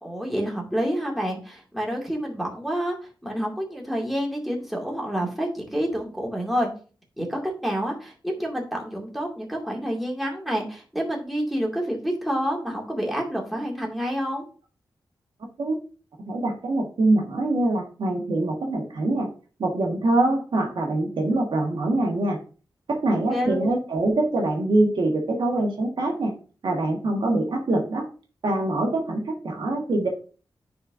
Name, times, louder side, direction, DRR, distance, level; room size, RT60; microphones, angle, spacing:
voice 1, 0.0-3.0 3.2-6.7 7.2-14.4 23.3-23.7, equal, ahead, -2 dB, 2.3 m, -28 dB
voice 2, 16.2-19.3 19.6-22.4 22.9-26.3 26.6-28.1 28.4-30.1, right 2 dB, 80° right, 0 dB, 1.6 m, -24 dB
9.7 x 4.3 x 2.6 m, 0.37 s
wide cardioid pair, 85°, 8 cm